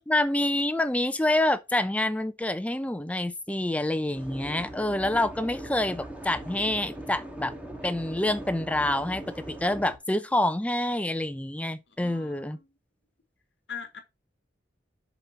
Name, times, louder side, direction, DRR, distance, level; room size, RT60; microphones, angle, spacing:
voice 1, 0.1-7.5 7.8-9.2 9.5-12.6, left 1 dB, 10° left, 0.5 m, -27 dB
sound 1, 4.1-10.0, right 1 dB, 10° right, 1.6 m, -40 dB
voice 2, 11.9-12.8 13.7-14.0, left 7 dB, 75° left, 1.4 m, -42 dB
7.1 x 4.0 x 5.6 m
head